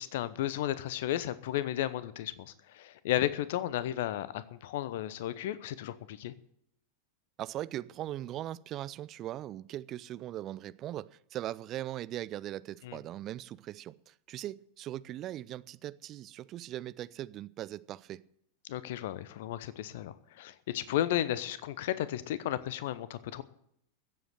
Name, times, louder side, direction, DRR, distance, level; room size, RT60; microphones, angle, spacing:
voice 1, 0.0-6.3 12.8-13.0 18.7-23.4, left 13 dB, 55° left, 0.8 m, -34 dB
voice 2, 7.4-18.2, right 13 dB, 35° right, 0.4 m, -40 dB
14.5 x 7.9 x 7.6 m
figure-of-eight pair, 90°, 0 cm